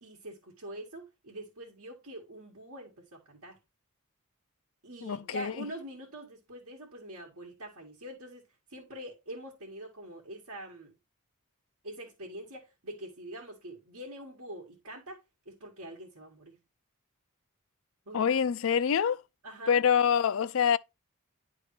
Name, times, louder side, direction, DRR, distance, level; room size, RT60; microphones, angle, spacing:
voice 1, 0.0-3.6 4.8-8.4 8.7-10.9 11.8-15.2 15.5-16.6 18.1-18.3 19.4-19.8, right 1 dB, 80° right, 1.8 m, -44 dB
voice 2, 5.0-5.5 18.1-19.2 19.7-20.8, left 7 dB, 65° left, 0.4 m, -25 dB
10.5 x 3.6 x 3.1 m
head